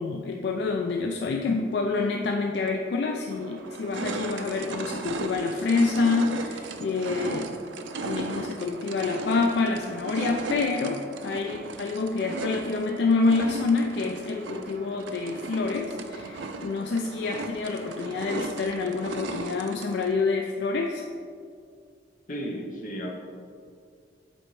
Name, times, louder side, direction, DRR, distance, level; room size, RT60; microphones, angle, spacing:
voice 1, 0.0-7.6 8.0-21.0, left 4 dB, 65° left, 3 dB, 0.3 m, -27 dB
sound 1, 2.7-2.8 3.3-20.1, right 3 dB, 85° right, 0.4 m, -36 dB
voice 2, 22.3-23.1, equal, 45° left, 0 dB, 0.8 m, -33 dB
7.6 x 4.4 x 3.1 m, 2.3 s
head